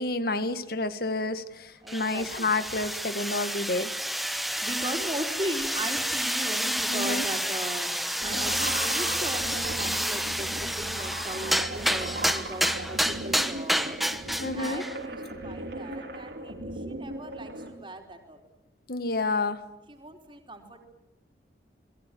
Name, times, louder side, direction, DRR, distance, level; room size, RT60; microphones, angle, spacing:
voice 1, 0.0-3.9 6.9-7.2 14.4-14.8 18.9-19.6, left 2 dB, 55° left, 11 dB, 1.9 m, -29 dB
voice 2, 1.8-2.5 4.6-14.0 14.5-18.4 19.9-20.8, right 1 dB, 25° right, 3 dB, 4.4 m, -38 dB
sound 1, 1.9-15.0, equal, ahead, 1.1 m, -29 dB
sound 2, 8.2-17.7, right 1 dB, 70° right, 5.2 m, -37 dB
29.0 x 22.0 x 9.3 m, 0.91 s
head